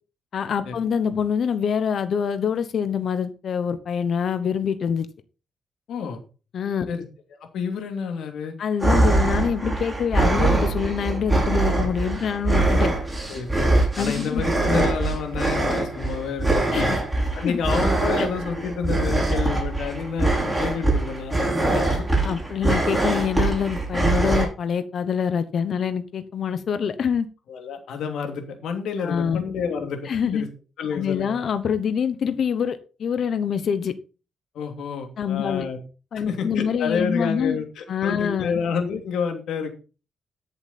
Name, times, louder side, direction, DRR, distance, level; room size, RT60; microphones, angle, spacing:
voice 1, 0.3-5.1 6.5-6.9 8.6-12.9 13.9-14.4 16.7-17.0 17.4-17.6 18.2-18.3 22.2-27.3 29.0-29.4 30.0-30.4 30.9-33.9 35.2-35.6 36.1-37.6 37.9-38.5, left 7 dB, 60° left, 11 dB, 1.0 m, -25 dB
voice 2, 5.9-6.2 6.9-7.0 7.5-8.6 13.3-17.0 17.3-22.1 27.5-30.5 30.8-31.4 34.5-35.8 36.3-39.7, left 6 dB, 90° left, 5 dB, 2.9 m, -29 dB
sound 1, 8.8-24.5, right 2 dB, 10° right, 6.2 m, -23 dB
13.5 x 7.2 x 4.3 m, 0.34 s
cardioid pair, 120°, 0 cm